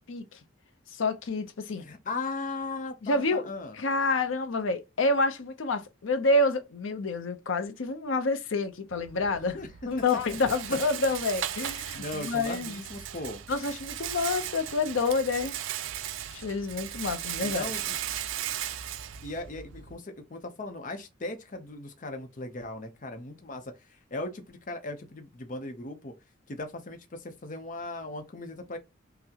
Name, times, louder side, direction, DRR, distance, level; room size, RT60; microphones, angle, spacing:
voice 1, 1.0-1.8 3.0-3.5 3.8-9.6 9.9-12.8 13.5-15.5 16.3-17.7, left 3 dB, 90° left, 0.6 m, -28 dB
voice 2, 1.8-3.8 9.5-9.7 10.3-10.5 11.9-13.4 17.4-18.0 19.2-26.1 26.5-28.8, left 2 dB, 40° left, 0.6 m, -38 dB
Rattle, 8.9-19.9, right 11 dB, 90° right, 0.4 m, -37 dB
5.7 x 2.1 x 2.8 m
head